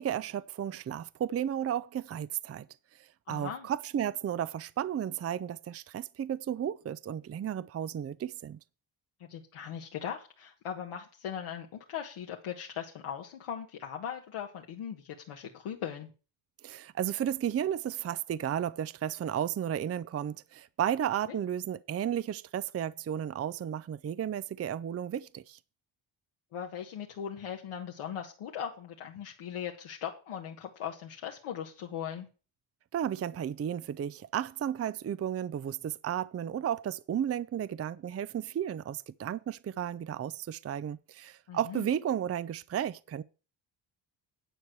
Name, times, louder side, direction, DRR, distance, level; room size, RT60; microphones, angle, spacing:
voice 1, 0.0-2.7 3.0-8.6 16.6-25.6 32.9-43.2, right 10 dB, 30° right, 0.5 m, -33 dB
voice 2, 3.3-3.7 9.2-16.1 21.3-21.4 26.5-32.3 41.5-41.9, left 8 dB, 80° left, 1.5 m, -39 dB
10.0 x 4.6 x 7.8 m
cardioid pair, 80°, 49 cm